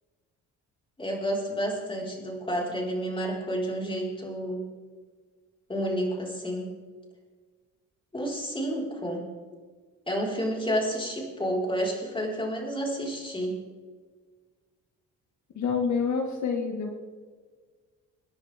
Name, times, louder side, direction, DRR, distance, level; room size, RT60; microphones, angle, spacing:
voice 1, 1.0-4.6 5.7-6.7 8.1-9.2 10.1-13.6, equal, 15° left, -2 dB, 5.0 m, -30 dB
voice 2, 15.6-17.0, left 5 dB, 70° left, 2 dB, 2.1 m, -27 dB
26.5 x 10.5 x 3.7 m, 1.5 s
cardioid pair, 90°, 30 cm